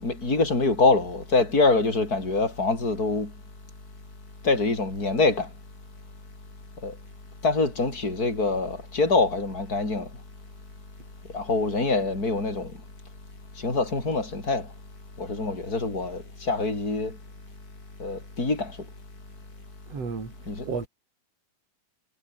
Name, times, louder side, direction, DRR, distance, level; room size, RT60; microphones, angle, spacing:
voice 1, 0.0-3.3 4.4-5.5 6.8-6.9 7.4-10.1 11.3-12.7 13.6-14.7 15.2-17.2 18.0-18.7 20.5-20.6, left 3 dB, 20° left, 7.6 m, -25 dB
voice 2, 19.9-20.9, right 5 dB, 40° right, 5.5 m, -33 dB
omnidirectional pair, 4.4 m